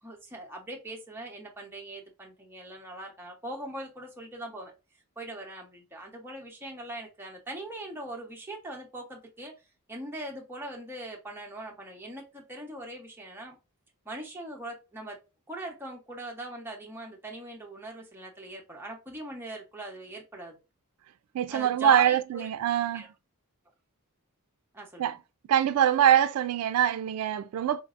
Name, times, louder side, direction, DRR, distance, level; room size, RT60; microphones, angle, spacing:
voice 1, 0.0-4.7 5.2-9.5 9.9-13.6 14.0-15.2 15.5-20.6 21.5-22.5 22.9-23.1 24.7-25.2, right 1 dB, 10° right, 0.7 m, -41 dB
voice 2, 21.3-23.1 25.0-25.2 25.5-27.8, right 10 dB, 85° right, 0.3 m, -24 dB
4.0 x 2.6 x 2.4 m
head